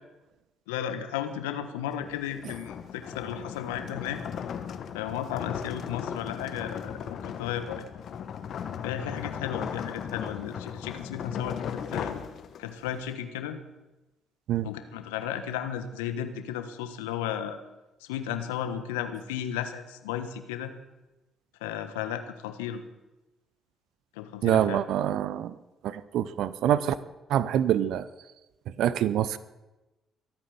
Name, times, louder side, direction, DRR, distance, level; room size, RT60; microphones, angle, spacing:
voice 1, 0.7-4.2 4.9-7.8 8.8-12.2 12.6-13.6 14.6-17.6 18.0-20.7 21.6-22.8 24.1-24.8, left 10 dB, 80° left, 9 dB, 1.3 m, -34 dB
sound 1, 1.9-12.9, left 8 dB, 60° left, 1.2 m, -37 dB
voice 2, 24.4-25.5 25.8-26.9 27.3-28.0 28.8-29.4, right 11 dB, 65° right, 16 dB, 0.6 m, -25 dB
23.0 x 9.0 x 7.0 m, 1.0 s
hypercardioid pair, 45°, 0 cm